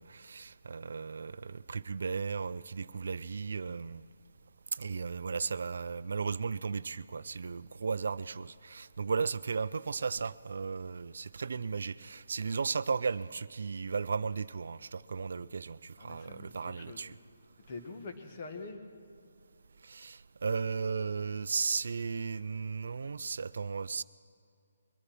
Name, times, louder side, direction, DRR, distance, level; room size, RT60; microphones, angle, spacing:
voice 1, 0.0-4.0 4.7-17.1 19.8-24.0, right 5 dB, 70° right, 17 dB, 0.4 m, -35 dB
voice 2, 16.0-17.0 17.7-18.8, left 3 dB, 40° left, 5 dB, 1.6 m, -44 dB
22.0 x 9.8 x 6.0 m, 2.5 s
hypercardioid pair, 160°, 0 cm